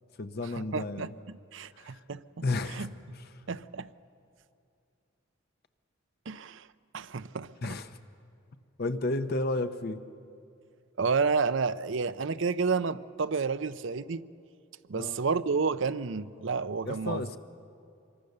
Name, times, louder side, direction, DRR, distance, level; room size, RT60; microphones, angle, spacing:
voice 1, 0.2-1.1 1.7-2.0 2.4-2.9 3.1-3.3 7.6-8.0 8.8-10.0 14.9-15.2 16.8-17.4, left 2 dB, 50° left, 0.8 m, -32 dB
voice 2, 0.7-2.2 2.7-2.9 3.5-3.9 6.3-6.7 6.9-7.8 11.0-14.3 14.9-17.4, right 5 dB, 65° right, 0.6 m, -30 dB
26.0 x 23.0 x 6.7 m
head